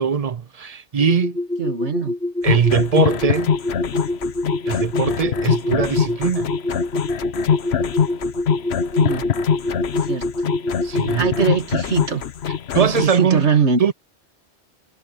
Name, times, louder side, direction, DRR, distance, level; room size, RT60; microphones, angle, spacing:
voice 1, 0.0-1.4 2.4-3.5 4.7-6.5 10.8-11.5 12.7-13.5 13.8-13.9, right 7 dB, 50° right, 0.4 m, -21 dB
sound 1, 1.0-11.5, left 1 dB, 5° left, 0.5 m, -26 dB
voice 2, 1.6-2.1 9.0-9.3 10.1-10.3 11.2-12.2 12.8-13.8, right 6 dB, 75° right, 2.2 m, -21 dB
sound 2, 2.5-13.1, left 7 dB, 65° left, 1.1 m, -23 dB
omnidirectional pair, 1.2 m